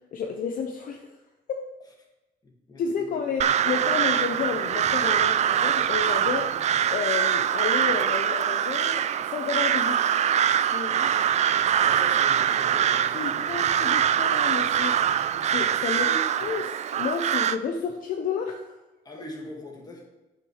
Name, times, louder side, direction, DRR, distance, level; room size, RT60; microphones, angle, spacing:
voice 1, 0.1-1.1 1.5-1.7 2.8-6.5 6.9-10.4 10.7-11.2 13.1-15.0 15.5-16.1 16.4-18.7, left 6 dB, 55° left, 4 dB, 0.8 m, -31 dB
voice 2, 2.4-3.1 11.8-13.5 16.0-16.2 19.0-20.0, left 1 dB, 25° left, -1 dB, 2.4 m, -41 dB
Crow, 3.4-17.6, right 9 dB, 45° right, 0.4 m, -23 dB
8.5 x 5.8 x 4.9 m, 1.1 s
cardioid pair, 110°, 17 cm